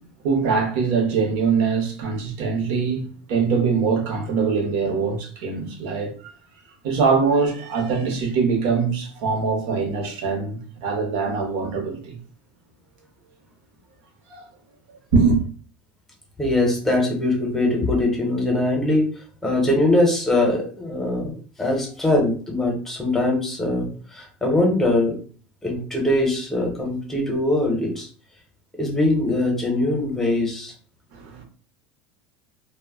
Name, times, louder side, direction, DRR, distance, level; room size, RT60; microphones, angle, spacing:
voice 1, 0.2-6.1 6.8-12.2 14.3-14.4 15.1-15.4 31.1-31.4, right 5 dB, 70° right, 0.9 m, -22 dB
voice 2, 16.4-19.1 19.4-25.2 25.6-28.1 28.8-30.7, left 2 dB, 10° left, 0.8 m, -22 dB
2.2 x 2.1 x 3.5 m
supercardioid pair, 135°, 4 cm